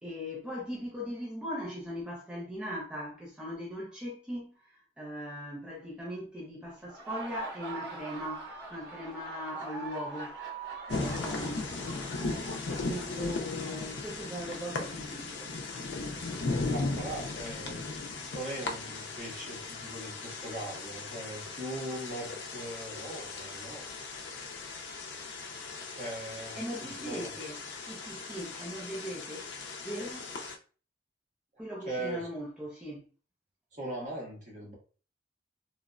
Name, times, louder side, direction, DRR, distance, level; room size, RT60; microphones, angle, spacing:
voice 1, 0.0-10.3 10.9-11.7 12.8-15.5 26.5-27.6 27.8-29.5 29.8-30.4 31.6-33.0, equal, 5° right, 0.5 m, -39 dB
Laughter, 6.8-14.4, right 2 dB, 85° right, 0.8 m, -43 dB
sound 1, 10.9-30.6, left 3 dB, 85° left, 0.5 m, -37 dB
voice 2, 16.5-17.8 18.3-23.9 25.9-27.3 31.8-32.3 33.7-34.7, right 1 dB, 45° right, 1.2 m, -40 dB
3.0 x 2.0 x 2.4 m
head